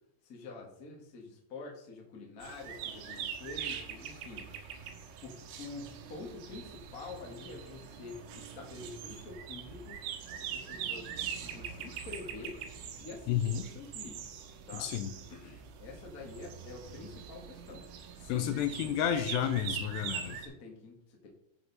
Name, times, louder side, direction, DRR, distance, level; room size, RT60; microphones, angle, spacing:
voice 1, 0.2-4.5 5.2-10.0 10.3-12.6 13.0-14.3 14.7-14.9 15.3-17.8 18.1-19.0 20.2-21.3, left 3 dB, 55° left, -1 dB, 0.9 m, -47 dB
sound 1, 2.4-20.5, right 7 dB, 85° right, 3.3 m, -43 dB
voice 2, 13.3-13.6 14.7-15.1 18.3-20.4, left 10 dB, 80° left, 8 dB, 2.7 m, -31 dB
14.0 x 5.3 x 4.1 m, 0.76 s
omnidirectional pair, 5.1 m